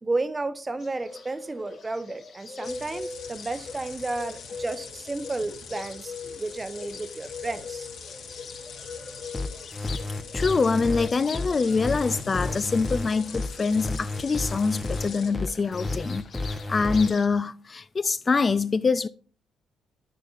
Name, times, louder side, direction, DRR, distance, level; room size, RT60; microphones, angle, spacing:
voice 1, 0.0-7.9, right 2 dB, 20° right, 0.7 m, -32 dB
Bird, 0.8-17.3, left 5 dB, 55° left, 1.2 m, -42 dB
sound 1, 2.6-15.3, left 5 dB, 80° left, 2.5 m, -43 dB
sound 2, 9.3-17.1, left 2 dB, 15° left, 0.8 m, -31 dB
voice 2, 10.3-19.1, left 4 dB, 35° left, 0.3 m, -25 dB
10.0 x 9.9 x 2.4 m
cardioid pair, 90°, 0 cm